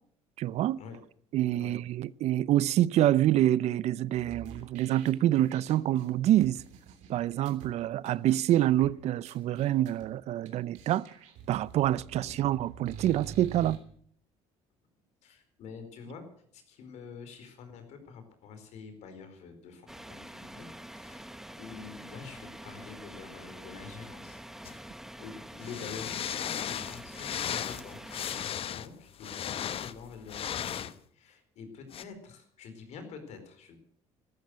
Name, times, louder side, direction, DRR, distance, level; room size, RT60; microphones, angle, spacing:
voice 1, 0.4-0.8 1.3-6.6 7.1-11.0 11.5-13.8, right 13 dB, 65° right, 0.6 m, -26 dB
sound 1, 4.2-7.7 8.1-8.2 8.3-8.9 9.3-10.1 10.5-10.6 10.7-13.8, right 7 dB, 80° right, 3.3 m, -47 dB
voice 2, 15.2-16.3 16.5-24.9 25.2-28.2 28.7-33.8, left 5 dB, 70° left, 4.5 m, -47 dB
sound 2, 19.9-28.5, right 1 dB, 5° right, 0.8 m, -46 dB
sound 3, 24.6-24.8 25.6-31.0 31.9-32.0, left 9 dB, 50° left, 0.9 m, -36 dB
13.5 x 13.0 x 8.0 m
supercardioid pair, 90°, 12 cm